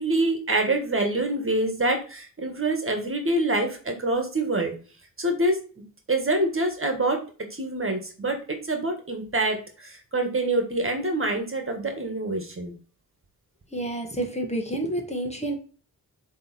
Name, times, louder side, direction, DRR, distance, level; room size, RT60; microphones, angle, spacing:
voice 1, 0.0-4.7 5.2-5.6 6.1-7.2 7.5-12.7, right 2 dB, 35° right, 4 dB, 1.8 m, -26 dB
voice 2, 13.7-15.6, right 1 dB, 15° left, 3 dB, 1.8 m, -29 dB
7.7 x 3.5 x 4.3 m, 0.39 s
cardioid pair, 65°, 37 cm